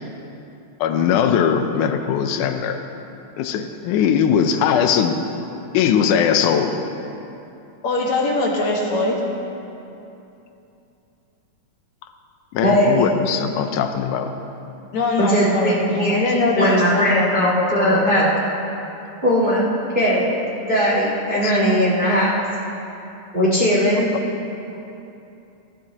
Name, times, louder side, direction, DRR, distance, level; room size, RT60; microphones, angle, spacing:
voice 1, 0.8-2.8 3.4-5.2 5.7-6.7 12.5-14.3 21.3-21.5, left 8 dB, 85° left, 7 dB, 2.1 m, -20 dB
voice 2, 7.8-9.2 14.9-18.3, left 2 dB, 70° left, -2 dB, 2.7 m, -22 dB
voice 3, 12.6-13.1 15.2-16.2 16.5-18.3 19.2-19.7 19.9-20.4 20.7-22.3 23.3-24.1, equal, 20° right, -6 dB, 1.6 m, -19 dB
16.0 x 14.5 x 2.9 m, 2.8 s
omnidirectional pair, 3.5 m